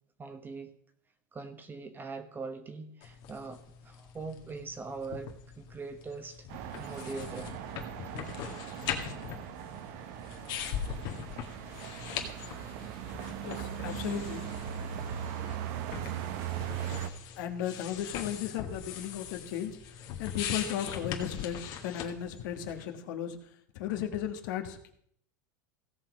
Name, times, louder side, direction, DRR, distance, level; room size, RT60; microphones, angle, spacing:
voice 1, 0.2-0.7 1.3-6.5 6.8-7.5, right 4 dB, 20° right, 9 dB, 1.1 m, -42 dB
sound 1, 3.0-22.8, left 8 dB, 55° left, 1.9 m, -41 dB
sound 2, 6.5-17.1, right 9 dB, 60° right, 1.1 m, -39 dB
voice 2, 13.4-14.4 17.4-19.8 20.2-23.4 23.7-24.9, left 10 dB, 70° left, 6 dB, 1.6 m, -35 dB
16.5 x 6.0 x 4.9 m, 0.67 s
supercardioid pair, 125°, 11 cm